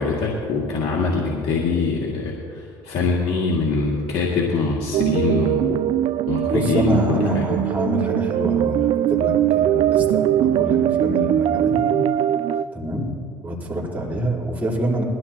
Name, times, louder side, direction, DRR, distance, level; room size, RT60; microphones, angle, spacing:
voice 1, 0.0-5.9 6.3-7.5, left 4 dB, 60° left, -3 dB, 2.3 m, -23 dB
sound 1, 4.9-12.6, right 12 dB, 60° right, 0.4 m, -21 dB
voice 2, 6.5-12.0 12.7-13.1 13.4-15.0, equal, 15° right, -5 dB, 3.9 m, -26 dB
21.5 x 14.0 x 2.9 m, 2.2 s
supercardioid pair, 75°, 10 cm